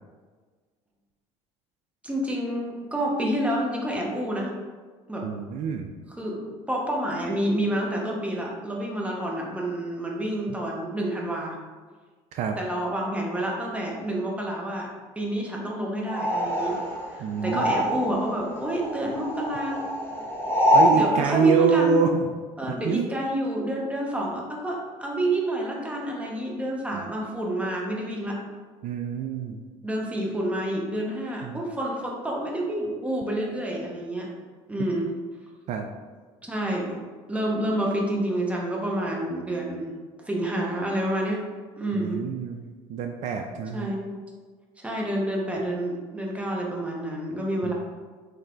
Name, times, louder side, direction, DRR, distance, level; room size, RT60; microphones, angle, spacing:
voice 1, 2.0-4.5 5.1-5.3 6.1-11.6 12.6-14.9 15.1-16.8 17.1-19.9 20.9-22.0 22.6-28.4 29.8-34.3 34.7-35.1 36.4-37.0 37.3-39.9 40.2-41.4 41.8-42.2 43.7-44.1 44.8-47.7, right 1 dB, 10° right, -2 dB, 0.9 m, -29 dB
voice 2, 5.2-5.9 12.3-12.6 17.2-17.7 20.7-22.3 22.7-23.1 26.9-27.1 28.8-29.6 31.4-31.6 34.8-34.9 35.7-35.9 41.9-43.9 47.6-47.7, right 5 dB, 60° right, 5 dB, 0.4 m, -26 dB
sound 1, 16.1-18.3 18.6-21.0, equal, 15° left, 1.0 m, -24 dB
3.3 x 3.1 x 3.8 m, 1.5 s
supercardioid pair, 95°, 14 cm